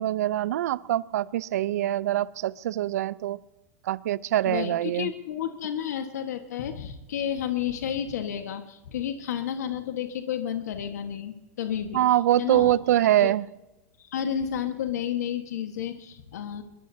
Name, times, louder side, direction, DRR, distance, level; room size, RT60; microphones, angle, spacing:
voice 1, 0.0-3.4 3.9-5.1 11.9-13.4, right 13 dB, 80° right, 0.6 m, -24 dB
voice 2, 4.4-12.0 12.4-13.3 14.0-16.6, left 9 dB, 90° left, 1.5 m, -31 dB
22.5 x 22.0 x 2.8 m
supercardioid pair, 145°, 9 cm